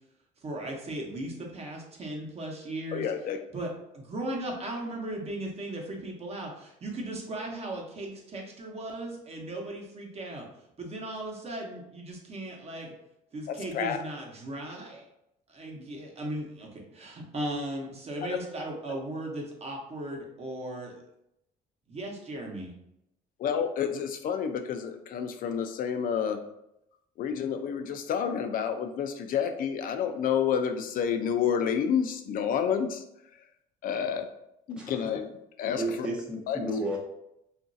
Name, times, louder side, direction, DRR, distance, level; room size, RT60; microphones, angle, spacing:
voice 1, 0.4-3.1 3.5-10.5 10.8-12.9 13.3-15.1 15.5-20.9 21.9-22.7, right 1 dB, 40° right, 0 dB, 0.8 m, -37 dB
voice 2, 2.9-3.4 13.5-14.0 15.8-15.9 18.3-18.4 23.4-26.4 27.2-33.0 33.8-34.3 34.7-35.2 35.6-36.1 36.5-36.6, left 7 dB, 55° left, 7 dB, 0.4 m, -29 dB
voice 3, 35.8-37.0, right 1 dB, 5° right, -3 dB, 0.5 m, -32 dB
3.0 x 2.5 x 2.6 m, 0.80 s
cardioid pair, 110°, 17 cm